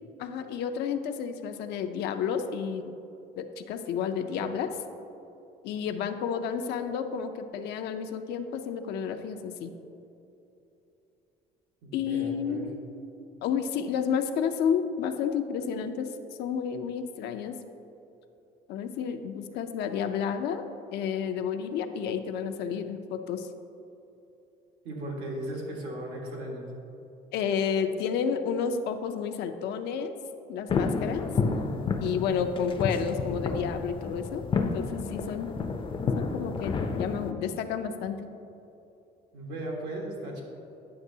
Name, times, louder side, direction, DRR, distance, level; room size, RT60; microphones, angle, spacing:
voice 1, 0.2-2.9 3.4-4.8 5.6-9.7 11.9-12.9 13.4-16.1 16.4-17.6 18.7-20.6 20.9-23.5 27.3-30.1 30.5-31.3 32.0-35.5 36.2-38.3, left 7 dB, 80° left, 7 dB, 0.5 m, -31 dB
voice 2, 11.8-12.6 24.8-26.7 39.3-40.4, right 1 dB, 85° right, -1 dB, 1.5 m, -36 dB
sound 1, 30.7-37.3, left 4 dB, 30° left, 0.4 m, -30 dB
9.5 x 6.0 x 2.7 m, 2.9 s
cardioid pair, 110°, 17 cm